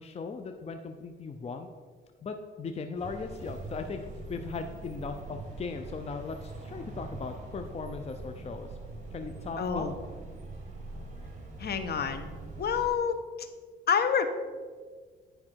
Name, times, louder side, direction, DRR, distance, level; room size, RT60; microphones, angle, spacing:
voice 1, 0.0-1.7 2.2-4.0 4.3-8.7 9.1-9.9, left 4 dB, 30° left, 6 dB, 0.6 m, -38 dB
sound 1, 3.0-12.9, right 3 dB, 35° right, 2.3 m, -43 dB
voice 2, 9.6-9.9 11.6-12.3 12.6-13.2 13.9-14.3, left 7 dB, 55° left, 9 dB, 0.9 m, -27 dB
9.9 x 5.3 x 4.6 m, 1.5 s
cardioid pair, 90°, 20 cm